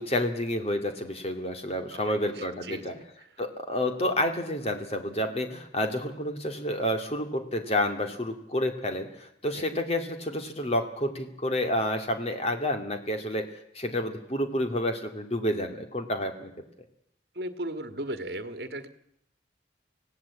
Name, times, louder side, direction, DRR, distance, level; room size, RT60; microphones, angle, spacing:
voice 1, 0.0-2.9 3.4-13.5 13.7-16.5, left 1 dB, 35° left, 6 dB, 2.5 m, -29 dB
voice 2, 1.9-3.0 9.6-9.7 17.4-18.9, right 1 dB, 60° right, 9 dB, 1.7 m, -37 dB
25.5 x 17.0 x 8.4 m, 0.78 s
head